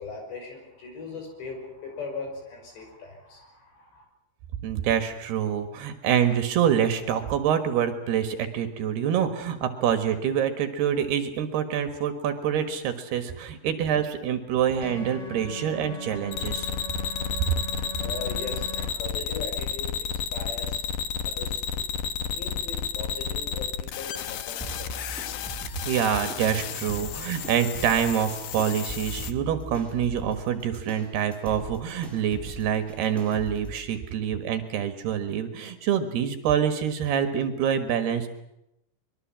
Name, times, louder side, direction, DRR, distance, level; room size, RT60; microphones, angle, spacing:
voice 1, 0.0-4.1 15.6-15.7 17.8-20.8 21.2-21.9 22.3-25.0, left 4 dB, 65° left, 3 dB, 8.0 m, -39 dB
voice 2, 4.6-16.7 25.9-38.3, right 9 dB, 65° right, 8 dB, 3.3 m, -26 dB
sound 1, 14.8-18.9, equal, 40° left, 2.6 m, -39 dB
sound 2, 16.3-29.3, left 8 dB, 85° left, 1.8 m, -32 dB
sound 3, 24.6-33.7, right 2 dB, ahead, 7.0 m, -41 dB
24.0 x 23.0 x 7.5 m, 0.84 s
omnidirectional pair, 5.4 m